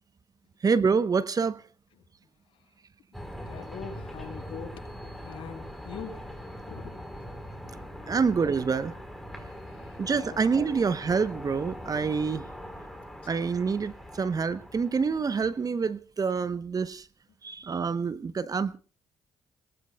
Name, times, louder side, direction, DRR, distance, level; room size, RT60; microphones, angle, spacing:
voice 1, 0.6-1.6 8.1-8.9 10.0-12.5 13.3-17.1 17.4-18.8, right 5 dB, 35° right, 0.9 m, -27 dB
sound 1, 3.1-15.8, equal, ahead, 4.1 m, -42 dB
voice 2, 3.4-4.7 5.2-6.2 6.7-7.0 9.7-10.0 10.2-10.8, left 7 dB, 60° left, 6.1 m, -42 dB
30.0 x 19.5 x 2.3 m
hypercardioid pair, 50°, 10 cm